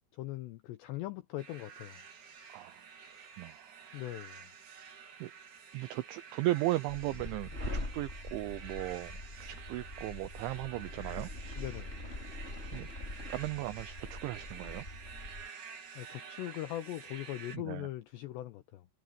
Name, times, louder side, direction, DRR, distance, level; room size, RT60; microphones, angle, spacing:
voice 1, 0.1-2.0 3.9-4.5 11.6-12.0 16.0-18.9, left 14 dB, 80° left, 2.5 m, -41 dB
sound 1, 1.4-17.6, right 6 dB, 45° right, 3.7 m, -50 dB
voice 2, 2.5-2.8 3.1-3.8 5.2-5.3 5.7-11.3 12.7-12.9 13.3-14.9 17.5-17.9, right 17 dB, 80° right, 2.8 m, -37 dB
sound 2, 6.9-15.5, left 2 dB, 15° left, 2.5 m, -43 dB
omnidirectional pair, 6.0 m